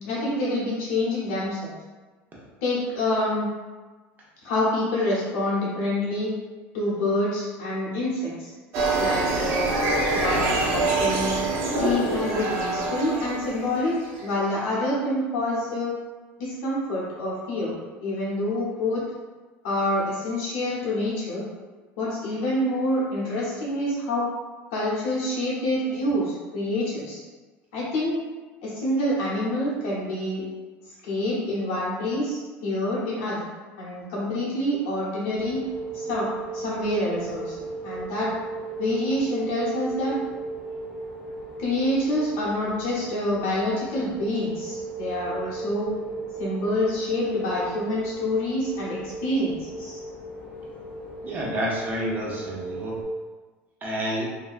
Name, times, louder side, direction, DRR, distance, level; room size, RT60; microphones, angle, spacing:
voice 1, 0.0-1.7 2.6-3.5 4.4-6.3 6.7-8.5 9.0-9.8 10.1-11.4 11.7-13.9 14.2-15.9 16.4-17.7 18.0-19.0 19.6-21.4 22.0-24.3 24.7-27.2 27.7-28.2 28.6-30.4 31.0-33.5 33.8-35.6 35.9-38.3 38.8-40.2 41.6-45.9 46.4-50.0, left 1 dB, 75° left, -7 dB, 1.0 m, -27 dB
sound 1, 8.7-14.3, right 2 dB, 60° right, 0.5 m, -25 dB
sound 2, 35.4-53.0, right 3 dB, 20° left, 1.0 m, -36 dB
voice 2, 51.2-53.0 53.8-54.3, right 1 dB, 35° right, -4 dB, 0.9 m, -29 dB
2.7 x 2.2 x 2.4 m, 1.3 s
supercardioid pair, 95°, 6 cm